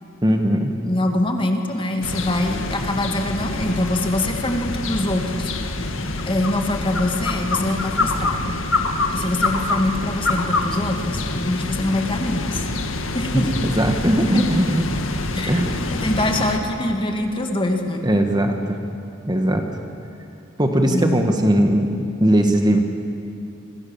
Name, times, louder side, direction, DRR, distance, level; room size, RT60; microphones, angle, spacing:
voice 1, 0.2-0.7 13.6-14.8 15.5-15.8 18.0-18.8 19.3-19.6 20.6-22.8, right 1 dB, 20° right, 4 dB, 1.8 m, -19 dB
voice 2, 0.8-5.5 6.2-8.4 9.1-12.6 13.1-13.7 14.2-14.4 15.3-18.1 20.9-21.3, left 1 dB, 25° left, 3 dB, 2.3 m, -24 dB
sound 1, 2.0-16.6, left 2 dB, 80° left, 1.9 m, -26 dB
28.5 x 26.0 x 7.3 m, 2.7 s
head